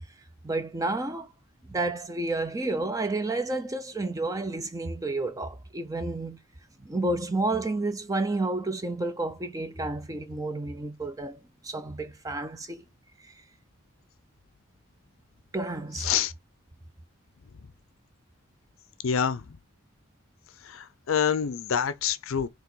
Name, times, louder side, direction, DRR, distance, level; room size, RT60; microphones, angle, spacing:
voice 1, 0.4-1.3 1.7-6.4 6.8-12.8 13.2-13.3 15.5-16.1, right 2 dB, 15° right, 0.5 m, -30 dB
voice 2, 16.0-16.3 19.0-19.6 20.6-22.5, left 7 dB, 70° left, 0.5 m, -27 dB
4.6 x 2.9 x 3.9 m
head